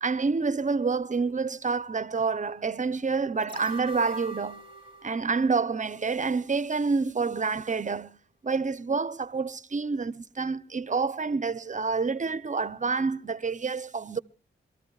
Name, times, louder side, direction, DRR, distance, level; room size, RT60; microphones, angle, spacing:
voice 1, 0.0-4.6 5.0-8.2 8.4-14.2, right 4 dB, 35° right, 0.7 m, -28 dB
sound 1, 3.4-6.5 6.9-7.0, right 2 dB, 60° left, 3.8 m, -43 dB
26.5 x 13.5 x 2.4 m
cardioid pair, 45°, 21 cm